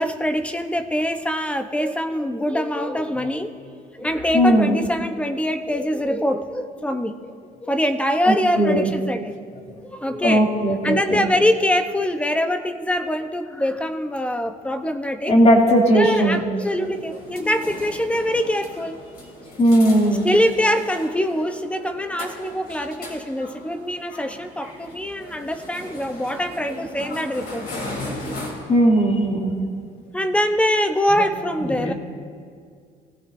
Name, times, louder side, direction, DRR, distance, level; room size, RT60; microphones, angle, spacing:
voice 1, 0.0-3.5 3.9-7.3 7.6-9.4 9.8-10.4 10.8-15.3 15.9-19.0 20.2-27.7 30.1-31.9, equal, 5° left, 7 dB, 0.9 m, -24 dB
voice 2, 4.3-4.7 8.2-8.9 9.7-9.8 10.2-11.3 15.3-16.4 17.4-17.5 19.6-20.3 28.7-29.6 31.2-31.3 31.7-31.9, equal, 40° left, -1 dB, 2.7 m, -18 dB
sound 1, 16.5-28.5, left 1 dB, 60° left, 3.8 m, -37 dB
24.0 x 16.5 x 2.7 m, 2.2 s
cardioid pair, 110°, 17 cm